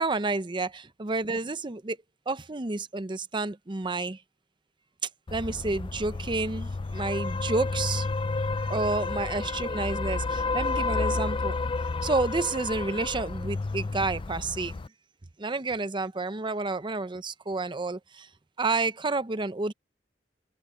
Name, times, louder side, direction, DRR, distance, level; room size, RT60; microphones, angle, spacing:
voice 1, 0.0-2.0 2.3-4.2 5.3-8.1 8.6-11.6 12.0-14.8 15.4-18.3 18.6-19.7, right 3 dB, 25° right, 0.7 m, -30 dB
sound 1, 5.3-14.9, left 3 dB, 30° left, 0.4 m, -31 dB
open air
head